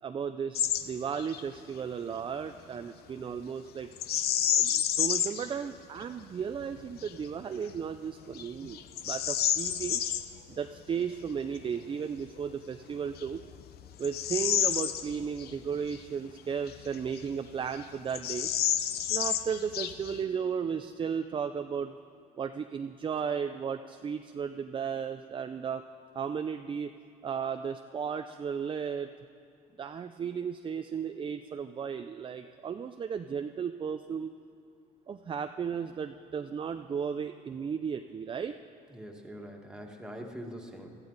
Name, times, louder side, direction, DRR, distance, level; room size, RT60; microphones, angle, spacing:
voice 1, 0.0-3.9 4.5-10.0 10.5-13.4 14.0-18.5 19.1-22.0 22.3-25.8 26.1-26.9 27.2-29.1 29.8-34.3 35.1-38.5, right 7 dB, 30° right, 7 dB, 0.5 m, -35 dB
Bird vocalization bird call bird song, 0.6-0.9 1.2-1.4 4.0-5.5 6.0-6.1 6.7-7.1 7.7-7.8 8.4-10.3 12.4-12.5 13.1-15.5 15.9-16.0 16.7-17.5 17.7-17.8 18.1-20.2, left 10 dB, 70° left, 0.7 m, -30 dB
voice 2, 38.9-40.9, equal, 5° right, 1 dB, 1.8 m, -43 dB
18.5 x 13.5 x 4.0 m, 2.5 s
cardioid pair, 110°, 17 cm